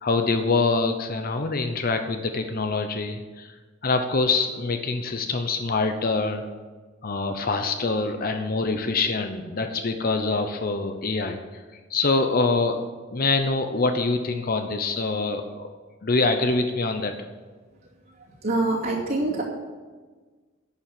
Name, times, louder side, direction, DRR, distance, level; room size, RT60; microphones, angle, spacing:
voice 1, 0.0-3.5 3.8-6.4 7.0-11.4 11.9-12.8 13.1-15.7 16.0-17.1, left 3 dB, 50° left, 6 dB, 0.8 m, -25 dB
voice 2, 18.4-19.4, right 2 dB, 55° right, -6 dB, 2.4 m, -24 dB
11.0 x 7.1 x 7.7 m, 1.4 s
head